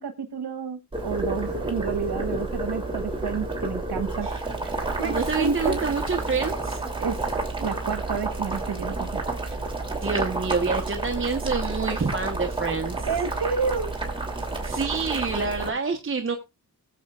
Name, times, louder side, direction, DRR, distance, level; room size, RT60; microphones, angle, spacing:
voice 1, 0.0-4.3 4.6-4.7 5.0-5.8 7.0-7.2 7.6-9.2 13.0-13.9, right 5 dB, 70° right, 8 dB, 1.3 m, -30 dB
Boiling, 0.9-15.7, right 2 dB, 15° right, 2.8 m, -30 dB
voice 2, 5.0-6.8 10.0-13.1 14.6-16.4, right 4 dB, 30° right, 3 dB, 1.0 m, -27 dB
19.5 x 7.6 x 2.4 m, 0.26 s
wide cardioid pair, 100°, 39 cm